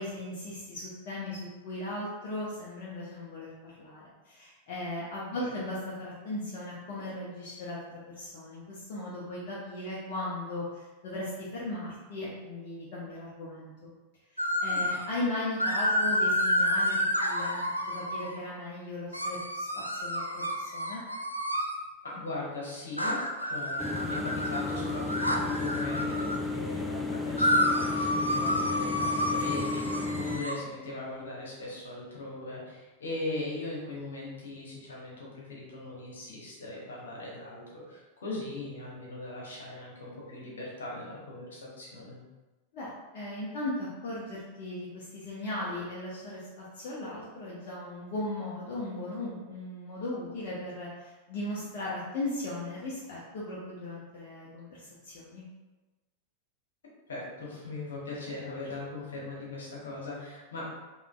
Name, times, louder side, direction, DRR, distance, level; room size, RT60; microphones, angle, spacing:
voice 1, 0.0-13.9 14.3-17.6 17.9-21.0 42.7-55.4, left 1 dB, 45° left, -7 dB, 0.9 m, -37 dB
sound 1, 14.4-15.1 15.6-18.4 19.1-21.8 23.0-26.4 27.4-30.5, equal, 90° right, 0.4 m, -29 dB
voice 2, 22.0-42.2 57.1-60.7, left 2 dB, 65° left, -4 dB, 1.3 m, -39 dB
sound 2, 23.8-30.4, left 3 dB, 5° left, 0.5 m, -33 dB
4.9 x 3.2 x 2.5 m, 1.2 s
figure-of-eight pair, 90°, 0 cm